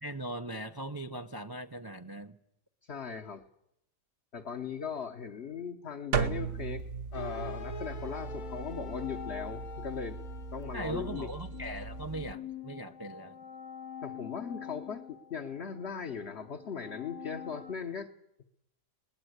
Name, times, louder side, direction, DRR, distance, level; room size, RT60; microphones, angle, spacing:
voice 1, 0.0-2.4 10.7-13.3, right 1 dB, 25° right, 7 dB, 0.4 m, -39 dB
voice 2, 2.9-3.4 4.3-6.8 7.1-10.2 10.5-11.3 14.0-18.1, left 6 dB, 45° left, 3 dB, 1.2 m, -39 dB
sound 1, 6.1-12.3, right 5 dB, 50° right, 1.2 m, -37 dB
sound 2, 7.1-12.1, left 3 dB, 65° left, 1.7 m, -47 dB
sound 3, 7.9-17.8, left 9 dB, 85° left, 2.6 m, -46 dB
22.5 x 19.5 x 8.1 m, 0.81 s
omnidirectional pair, 1.7 m